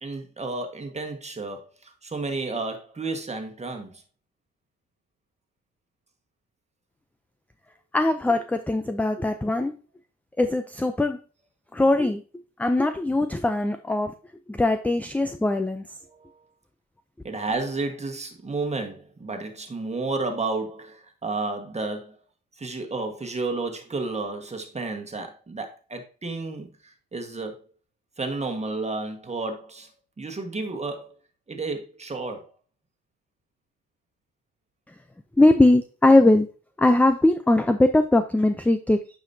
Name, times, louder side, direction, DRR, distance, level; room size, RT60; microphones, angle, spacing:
voice 1, 0.0-4.0 16.1-16.4 17.2-22.2 22.5-27.6 28.2-29.9 30.2-31.1 31.5-32.5, right 3 dB, 20° right, 1.5 m, -32 dB
voice 2, 7.9-9.7 10.4-11.2 11.7-12.2 12.6-14.1 14.5-15.8 35.4-36.5 36.8-39.0, left 2 dB, 5° left, 0.4 m, -20 dB
8.9 x 5.1 x 2.7 m
cardioid pair, 90°, 30 cm